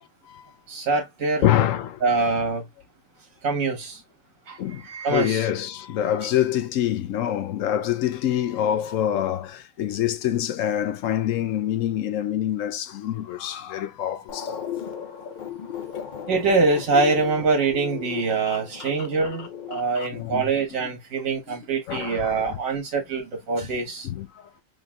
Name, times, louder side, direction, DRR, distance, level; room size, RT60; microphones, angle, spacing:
voice 1, 0.7-1.4 2.0-2.6 3.4-4.0 4.5-5.5 16.3-24.1, right 4 dB, 75° right, 1.6 m, -24 dB
voice 2, 1.4-2.0 4.6-4.8 5.1-14.7 20.1-20.9 21.5-21.6 21.9-22.6 24.0-24.5, left 11 dB, 75° left, 0.9 m, -26 dB
sound 1, 14.3-20.2, left 8 dB, 50° left, 0.6 m, -36 dB
3.9 x 3.2 x 2.3 m
omnidirectional pair, 1.4 m